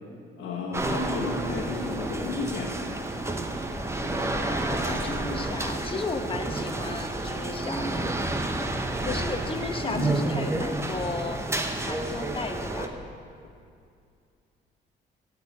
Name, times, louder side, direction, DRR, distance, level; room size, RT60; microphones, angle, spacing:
voice 1, 0.4-2.7 9.8-10.2, left 3 dB, 85° left, -5 dB, 1.4 m, -32 dB
sound 1, 0.7-12.9, right 2 dB, 15° right, 0.8 m, -30 dB
voice 2, 3.9-8.1 9.0-11.4 11.8-12.9, left 3 dB, 25° left, 4 dB, 1.1 m, -35 dB
sound 2, 4.8-6.7 8.4-8.5 9.3-9.5 10.4-10.5, equal, 45° right, 2.4 m, -46 dB
12.5 x 4.7 x 8.5 m, 2.4 s
cardioid pair, 90°, 20 cm